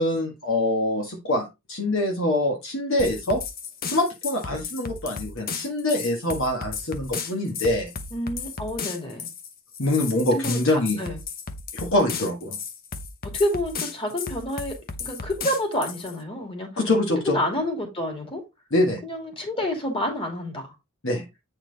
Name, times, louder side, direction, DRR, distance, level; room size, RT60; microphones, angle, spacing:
voice 1, 0.0-3.4 3.8-7.9 9.8-11.0 11.7-12.6 16.8-17.4 18.7-19.0 21.0-21.2, left 1 dB, 60° left, 1.6 m, -24 dB
sound 1, 3.0-16.2, left 5 dB, 40° left, 0.9 m, -34 dB
voice 2, 8.1-9.3 10.3-11.2 12.2-12.3 13.3-16.7 17.3-18.4 19.0-20.7, left 1 dB, 25° left, 2.6 m, -29 dB
8.6 x 4.4 x 4.0 m
head